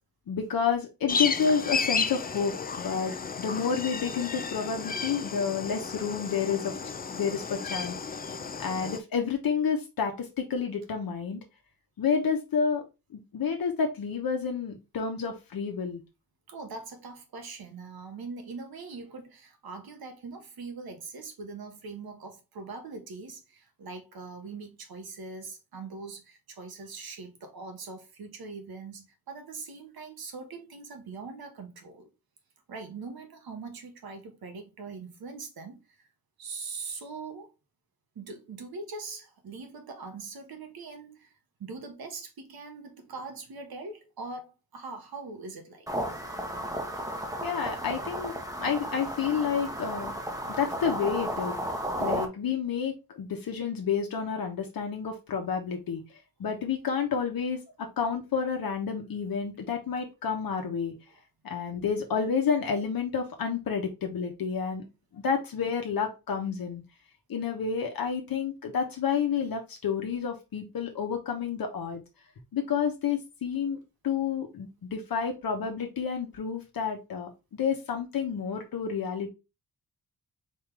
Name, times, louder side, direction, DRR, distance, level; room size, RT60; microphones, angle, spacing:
voice 1, 0.3-6.7 7.1-8.0 8.6-11.4 12.0-12.8 13.1-16.0 47.4-48.3 48.6-50.1 50.5-51.6 52.0-56.0 56.4-60.9 61.4-64.8 65.1-66.8 67.3-72.0 72.5-73.8 74.0-79.3, left 6 dB, 65° left, 1.0 m, -30 dB
sound 1, 1.1-9.0, left 5 dB, 25° left, 0.4 m, -33 dB
voice 2, 16.5-32.1 32.7-36.1 36.4-37.5 38.1-41.3 41.6-45.9, right 4 dB, 75° right, 1.4 m, -42 dB
sound 2, 45.9-52.3, right 1 dB, 10° right, 1.0 m, -33 dB
4.2 x 3.7 x 3.3 m
wide cardioid pair, 110°, 37 cm